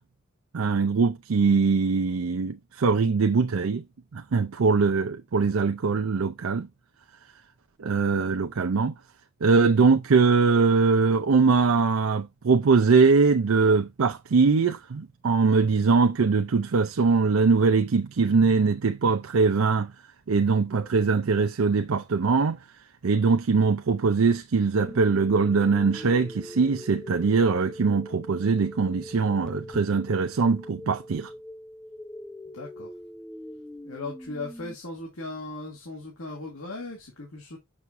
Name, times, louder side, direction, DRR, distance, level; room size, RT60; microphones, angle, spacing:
voice 1, 0.5-3.8 4.1-6.7 7.8-8.9 9.4-19.9 20.3-22.6 23.0-31.3, right 4 dB, 75° right, 0.5 m, -22 dB
sound 1, 24.7-34.7, equal, 5° left, 0.5 m, -42 dB
voice 2, 32.5-32.9 33.8-37.6, left 2 dB, 80° left, 2.1 m, -37 dB
7.0 x 6.2 x 2.6 m
head